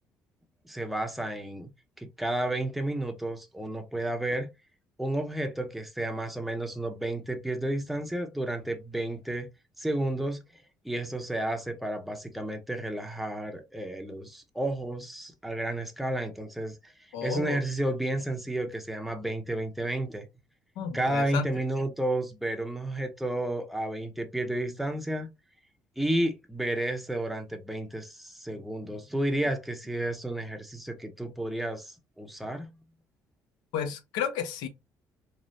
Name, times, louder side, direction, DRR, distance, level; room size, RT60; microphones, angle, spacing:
voice 1, 0.6-1.7 2.0-4.5 5.0-9.5 9.8-20.3 20.9-25.3 26.0-32.8, right 1 dB, ahead, 0.6 m, -32 dB
voice 2, 17.1-17.6 20.8-21.5 33.7-34.7, left 7 dB, 85° left, 0.6 m, -32 dB
3.1 x 2.0 x 2.6 m
supercardioid pair, 85°, 7 cm